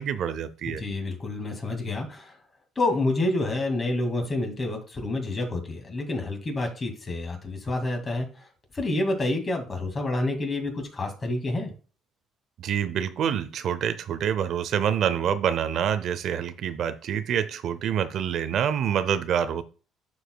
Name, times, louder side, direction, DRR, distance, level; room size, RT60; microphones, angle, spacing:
voice 1, 0.0-0.8 12.6-19.6, right 8 dB, 65° right, 12 dB, 0.6 m, -26 dB
voice 2, 0.7-2.4 2.8-11.7, left 2 dB, 30° left, 4 dB, 2.0 m, -28 dB
11.5 x 4.8 x 2.2 m, 0.35 s
cardioid pair, 110°, 0 cm